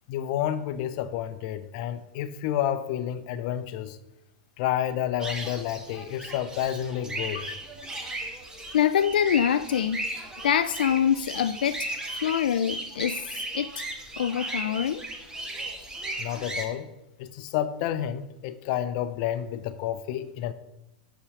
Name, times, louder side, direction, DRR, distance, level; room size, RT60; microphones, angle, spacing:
voice 1, 0.1-4.0 4.6-7.4 12.2-12.3 16.2-16.9 17.2-20.5, left 11 dB, 50° left, 0.7 m, -30 dB
sound 1, 5.2-16.6, right 1 dB, 15° right, 1.5 m, -36 dB
voice 2, 8.7-10.1 10.4-13.8 14.2-15.0, left 9 dB, 80° left, 0.4 m, -25 dB
6.1 x 5.6 x 7.0 m
hypercardioid pair, 120°, 5 cm